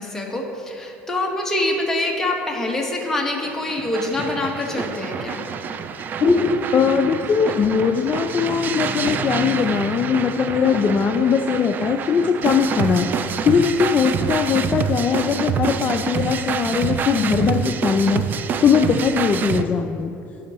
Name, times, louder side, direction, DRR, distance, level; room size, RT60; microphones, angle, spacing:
voice 1, 0.0-5.5, left 2 dB, 10° left, -1 dB, 1.4 m, -25 dB
sound 1, 3.4-19.6, right 6 dB, 40° right, 0.4 m, -27 dB
sound 2, 4.1-7.2 7.5-8.0 8.3-8.4 8.7-9.4 10.1-10.9 11.5-11.7, left 3 dB, 55° left, 1.7 m, -26 dB
sound 3, 6.0-14.0, right 2 dB, 75° right, 1.1 m, -39 dB
voice 2, 6.7-18.2 18.6-20.1, left 6 dB, 35° left, 5 dB, 0.4 m, -20 dB
15.5 x 5.3 x 3.0 m, 2.7 s
cardioid pair, 115°, 5 cm